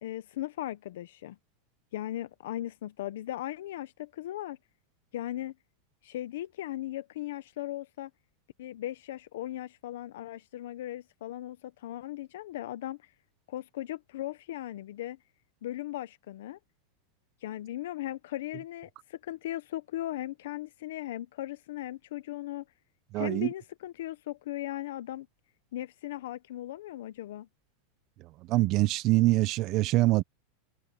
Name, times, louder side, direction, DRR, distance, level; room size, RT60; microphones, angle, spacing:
voice 1, 0.0-1.4 1.9-4.6 5.1-5.5 6.0-8.1 8.6-13.1 13.5-15.2 15.6-16.6 17.4-22.6 23.1-25.3 25.7-27.5, left 14 dB, 75° left, 0.8 m, -38 dB
voice 2, 23.1-23.5 28.5-30.2, right 18 dB, 35° right, 0.7 m, -24 dB
supercardioid pair, 170°, 0 cm